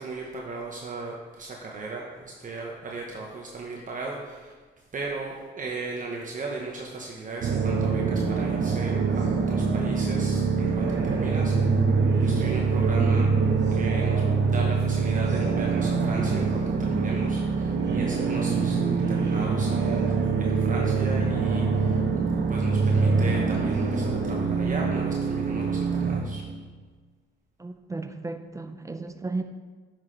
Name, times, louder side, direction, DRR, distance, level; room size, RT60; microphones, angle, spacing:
voice 1, 0.0-4.5 4.9-11.6 12.2-13.3 13.7-20.1 20.4-22.0 22.5-26.4, right 3 dB, 40° right, -1 dB, 1.0 m, -37 dB
sound 1, 7.4-26.2, right 4 dB, 65° right, 1.1 m, -24 dB
voice 2, 27.6-29.4, right 3 dB, 15° right, 8 dB, 0.5 m, -34 dB
9.4 x 6.0 x 3.3 m, 1.4 s
cardioid pair, 90°, 20 cm